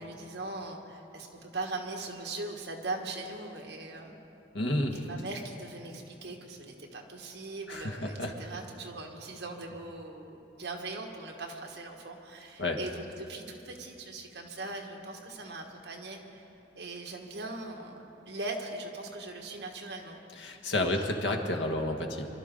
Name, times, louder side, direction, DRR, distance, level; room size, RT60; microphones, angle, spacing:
voice 1, 0.0-4.1 4.9-16.4 16.7-20.2 20.8-21.2, right 2 dB, 75° right, 1 dB, 1.6 m, -40 dB
voice 2, 4.5-4.9 7.7-8.3 12.6-12.8 20.4-22.3, left 1 dB, 90° left, 3 dB, 1.4 m, -30 dB
24.5 x 12.5 x 3.8 m, 2.9 s
head